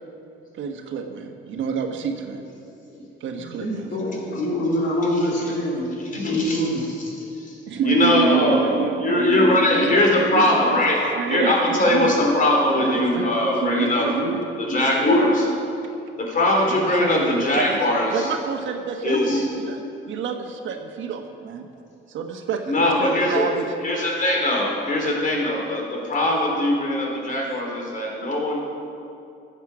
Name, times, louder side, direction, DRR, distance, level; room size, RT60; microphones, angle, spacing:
voice 1, 0.6-2.4 3.2-3.9 7.7-12.1 12.8-14.7 16.6-17.8 18.1-21.7 22.1-23.7, right 6 dB, 75° right, 4 dB, 1.2 m, -28 dB
voice 2, 3.3-6.8, left 1 dB, 65° left, -3 dB, 3.2 m, -25 dB
voice 3, 6.1-6.6 7.4-8.6 9.0-11.0 11.3-14.1 14.7-15.5 16.3-18.3 19.0-19.4 22.7-23.5 23.8-28.6, left 1 dB, 40° left, -1 dB, 3.4 m, -21 dB
14.0 x 8.3 x 6.1 m, 2.6 s
cardioid pair, 90°, 20 cm